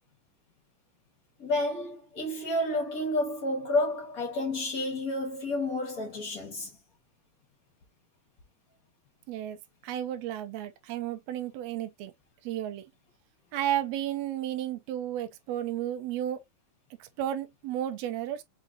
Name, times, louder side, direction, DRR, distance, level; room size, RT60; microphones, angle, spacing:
voice 1, 1.4-6.7, left 1 dB, 75° left, 0.8 m, -30 dB
voice 2, 9.3-9.6 9.8-12.1 12.4-12.8 13.5-16.4 17.0-18.4, right 11 dB, 75° right, 1.8 m, -33 dB
6.6 x 2.5 x 2.7 m
omnidirectional pair, 3.5 m